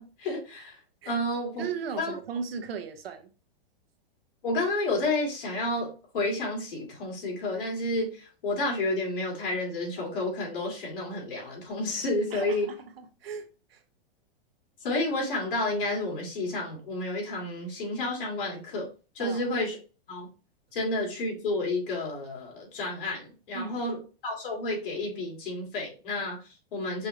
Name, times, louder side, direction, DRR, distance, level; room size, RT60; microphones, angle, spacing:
voice 1, 0.0-1.6 2.0-2.1 4.4-12.7 14.8-18.9 19.1-19.8 20.1-20.3 20.7-27.1, left 2 dB, 60° left, 2.5 m, -31 dB
voice 2, 1.6-3.3 12.3-13.8 19.2-19.4 23.5-23.8, right 6 dB, 75° right, 1.0 m, -37 dB
5.3 x 3.3 x 2.9 m
supercardioid pair, 180°, 30 cm